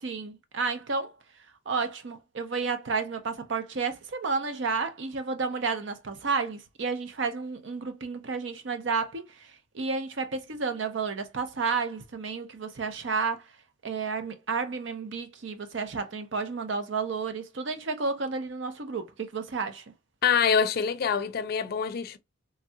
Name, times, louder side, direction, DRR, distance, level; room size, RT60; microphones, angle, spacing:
voice 1, 0.0-1.1 1.7-9.2 9.7-13.4 13.8-19.8, right 4 dB, 75° right, 0.6 m, -31 dB
voice 2, 20.2-22.2, left 6 dB, 55° left, 0.4 m, -25 dB
3.2 x 2.3 x 2.7 m
head